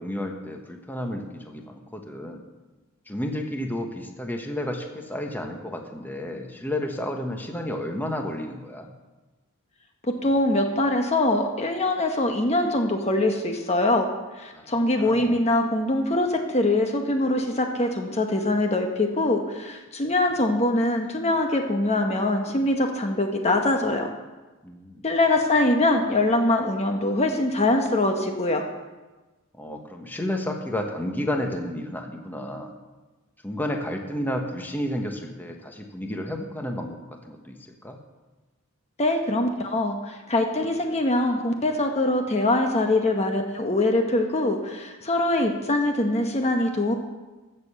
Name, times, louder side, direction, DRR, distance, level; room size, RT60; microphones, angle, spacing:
voice 1, 0.0-2.4 3.1-8.9 14.5-14.6 15.0-15.4 24.6-25.0 29.5-32.7 33.4-38.0, left 1 dB, 10° left, 3 dB, 1.2 m, -31 dB
voice 2, 10.2-14.1 14.4-24.1 25.0-28.6 39.0-46.9, left 2 dB, 30° left, 4 dB, 1.0 m, -23 dB
14.5 x 6.7 x 6.7 m, 1.2 s
head